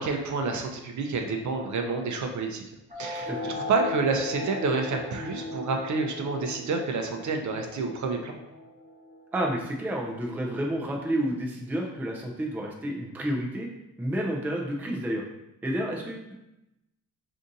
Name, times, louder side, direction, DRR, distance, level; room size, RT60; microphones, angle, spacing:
voice 1, 0.0-2.6 3.0-8.4, right 3 dB, 50° right, 3 dB, 0.5 m, -29 dB
sound 1, 2.9-9.9, left 1 dB, 20° right, 0.8 m, -38 dB
voice 2, 3.1-3.5 9.3-13.7 14.0-15.2 15.6-16.4, right 1 dB, 5° right, 0 dB, 0.3 m, -30 dB
2.7 x 2.5 x 3.8 m, 0.90 s
cardioid pair, 105°, 37 cm